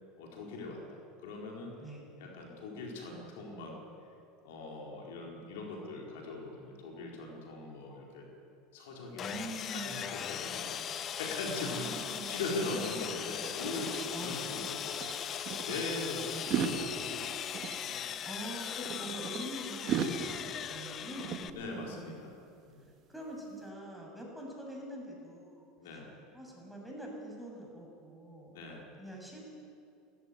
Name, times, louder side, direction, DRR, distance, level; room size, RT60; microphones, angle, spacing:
voice 1, 0.2-1.7 2.2-3.8 4.4-8.3 8.7-12.0 12.3-15.0 15.6-17.3 17.8-18.0 21.5-22.3 22.7-22.8 25.8-26.1 28.5-28.8, left 2 dB, 75° left, -1 dB, 4.4 m, -41 dB
Sawing, 9.2-21.5, left 9 dB, 40° left, 1.0 m, -39 dB
voice 2, 9.2-10.8 11.6-12.4 14.1-14.7 15.9-16.7 18.2-20.4 20.7-22.3 23.1-25.7 26.3-28.6 29.0-29.4, right 1 dB, ahead, -1 dB, 7.3 m, -45 dB
sound 1, 11.8-14.7 15.0-15.8 16.3-19.4 19.9-22.1, right 7 dB, 50° right, 2.1 m, -39 dB
18.0 x 15.0 x 9.6 m, 2.5 s
hypercardioid pair, 90°, 0 cm